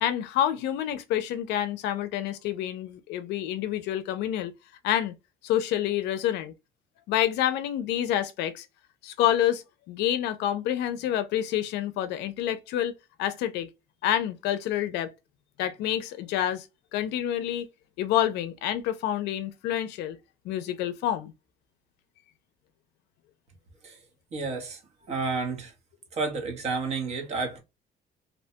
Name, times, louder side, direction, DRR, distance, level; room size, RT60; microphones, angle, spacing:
voice 1, 0.0-4.5 4.8-5.1 5.4-6.5 7.1-8.7 9.0-12.9 13.2-13.7 14.0-15.1 15.6-16.7 16.9-17.7 18.0-20.2 20.5-21.3, left 11 dB, 80° left, 0.4 m, -28 dB
voice 2, 24.3-24.8 25.1-25.7 26.1-27.6, right 4 dB, 40° right, 0.9 m, -30 dB
2.7 x 2.1 x 2.7 m
cardioid pair, 165°, 17 cm